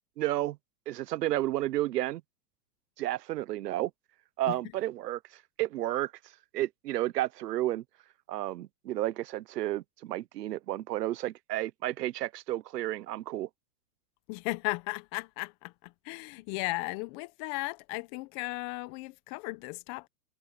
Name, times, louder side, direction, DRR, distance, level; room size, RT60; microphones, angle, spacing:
voice 1, 0.2-0.6 0.9-2.2 3.0-3.9 4.4-5.2 5.6-6.1 6.5-7.8 8.3-13.5, right 14 dB, 80° right, 1.3 m, -31 dB
voice 2, 14.3-20.1, left 23 dB, 35° left, 1.1 m, -36 dB
supercardioid pair, 155°, 47 cm